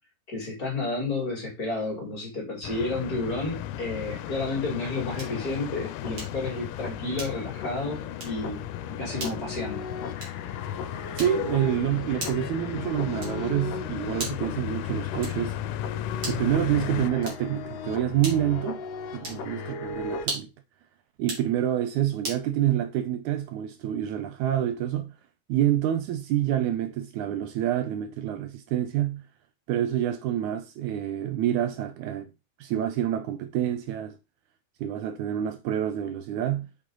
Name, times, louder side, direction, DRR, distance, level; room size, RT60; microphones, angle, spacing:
voice 1, 0.3-8.7 9.0-9.9, left 2 dB, 30° left, 2.6 m, -31 dB
sound 1, 2.6-17.1, left 12 dB, 85° left, 2.1 m, -35 dB
sound 2, 5.1-5.5 6.2-6.5 7.1-7.6 8.1-8.4 9.2-9.5 10.2-10.5 11.2-11.6 12.2-12.6 13.2-13.5 14.2-14.6 15.2-15.6 16.2-16.5 17.2-17.6 18.2-18.6 19.2-19.5 20.2-20.6 21.2-21.5 22.2-22.5, right 2 dB, 45° right, 3.4 m, -38 dB
sound 3, 5.2-20.3, left 5 dB, 65° left, 1.8 m, -38 dB
voice 2, 11.2-15.6 16.3-18.8 19.1-20.5 21.2-25.1 25.5-29.2 29.7-32.3 32.6-34.2 34.8-36.7, right 11 dB, 80° right, 1.9 m, -27 dB
6.4 x 5.6 x 3.8 m
omnidirectional pair, 3.7 m